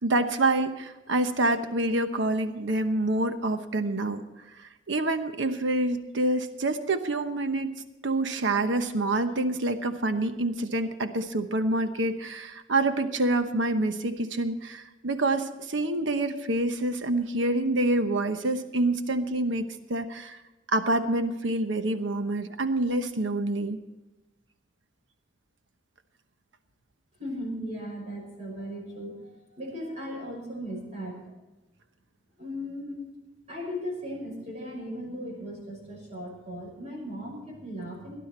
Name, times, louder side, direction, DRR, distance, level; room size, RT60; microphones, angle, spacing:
voice 1, 0.0-4.2 4.6-7.7 8.0-20.4 20.7-23.8, right 2 dB, 80° right, 8 dB, 1.0 m, -27 dB
voice 2, 27.2-31.2 32.4-33.0 33.5-38.2, equal, 35° right, -2 dB, 5.8 m, -37 dB
18.5 x 11.5 x 4.4 m, 1.1 s
head